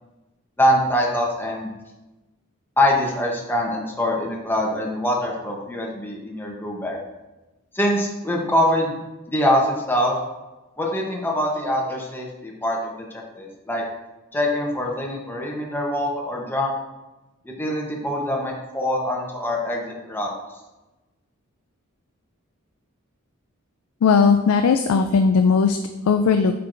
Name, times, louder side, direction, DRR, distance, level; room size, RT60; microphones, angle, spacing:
voice 1, 0.6-1.7 2.8-7.0 7.7-9.0 9.3-10.2 10.8-12.9 13.3-13.8 14.3-16.7 17.6-20.3, left 1 dB, 10° left, -1 dB, 0.9 m, -23 dB
voice 2, 24.0-25.8 26.1-26.5, left 5 dB, 85° left, 6 dB, 0.4 m, -17 dB
8.1 x 4.6 x 2.6 m, 1.1 s
head